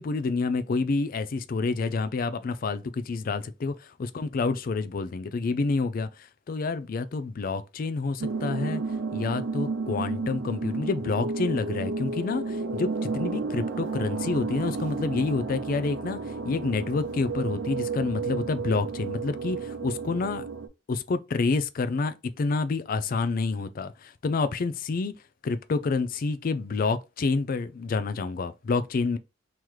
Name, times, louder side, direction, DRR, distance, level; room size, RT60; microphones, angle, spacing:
voice 1, 0.0-8.8 9.1-16.2 16.4-20.4 20.9-25.1 25.4-29.2, left 4 dB, 45° left, 0.4 m, -28 dB
sound 1, 8.2-20.7, right 4 dB, 80° right, 0.6 m, -32 dB
3.1 x 3.0 x 3.7 m
head